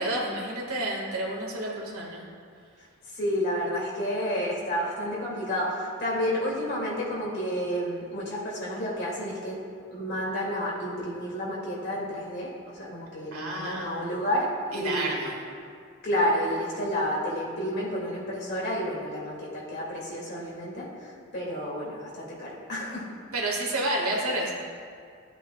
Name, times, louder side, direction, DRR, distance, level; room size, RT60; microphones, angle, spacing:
voice 1, 0.0-2.3 13.3-14.1 14.7-15.4 23.3-24.5, right 1 dB, 80° right, -2 dB, 1.8 m, -30 dB
voice 2, 3.1-9.6 9.9-15.1 16.0-20.9 21.3-23.1, equal, 50° left, -6 dB, 2.4 m, -30 dB
14.0 x 8.1 x 2.3 m, 2.2 s
head